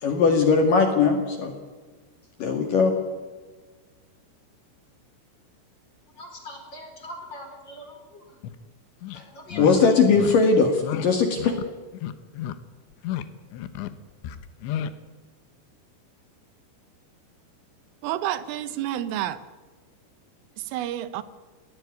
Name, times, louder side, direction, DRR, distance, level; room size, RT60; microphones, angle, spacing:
voice 1, 0.0-1.5 2.4-2.9 9.1-9.2 9.6-11.5, left 4 dB, 55° left, 5 dB, 3.0 m, -20 dB
voice 2, 6.1-8.4 9.3-10.0, equal, 25° left, 4 dB, 4.1 m, -42 dB
sound 1, 8.4-8.6 9.0-9.2 9.5-9.7 10.1-10.3 10.8-11.1 11.4-11.7 11.9-12.5 12.9-13.3 13.5-13.9 14.2-14.9, left 11 dB, 75° left, 3.1 m, -32 dB
voice 3, 18.0-19.4 20.6-21.2, right 12 dB, 85° right, 14 dB, 3.6 m, -29 dB
20.0 x 18.0 x 9.5 m, 1.3 s
omnidirectional pair, 5.8 m